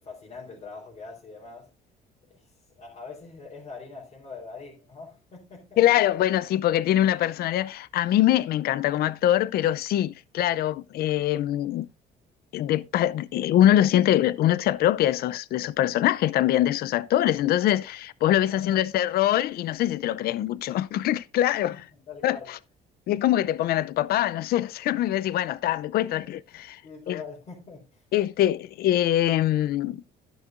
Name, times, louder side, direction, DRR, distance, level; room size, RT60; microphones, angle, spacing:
voice 1, 0.0-1.7 2.3-5.8 18.4-18.8 21.7-22.5 26.0-26.4 26.8-28.1, left 4 dB, 40° left, 3.9 m, -43 dB
voice 2, 5.8-11.9 12.5-21.8 22.2-22.4 23.1-26.8 27.1-27.2 28.1-30.0, left 12 dB, 65° left, 0.6 m, -23 dB
12.0 x 10.5 x 2.6 m
cardioid pair, 110°, 17 cm